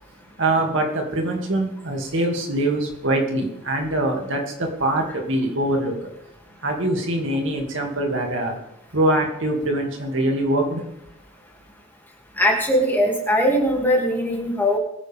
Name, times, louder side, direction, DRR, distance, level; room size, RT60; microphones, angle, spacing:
voice 1, 0.4-6.1 6.6-8.6 8.9-10.8, right 1 dB, 65° right, 1 dB, 2.6 m, -23 dB
voice 2, 12.4-14.8, equal, 10° left, -1 dB, 2.7 m, -20 dB
22.0 x 9.8 x 3.6 m, 0.83 s
head